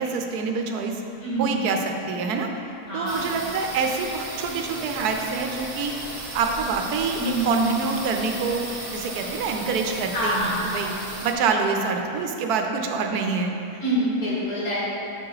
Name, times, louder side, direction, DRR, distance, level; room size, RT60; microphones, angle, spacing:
voice 1, 0.0-1.0 1.4-2.5 2.9-5.9 6.3-8.7 8.9-10.9 11.2-13.5, right 5 dB, 85° right, 4 dB, 1.2 m, -26 dB
voice 2, 1.2-1.6 2.9-3.4 7.2-7.7 10.1-10.8 13.8-14.8, right 1 dB, 70° left, -9 dB, 2.5 m, -26 dB
sound 1, 3.1-11.3, right 2 dB, 35° right, 0.6 m, -35 dB
6.9 x 4.7 x 4.9 m, 2.7 s
omnidirectional pair, 1.6 m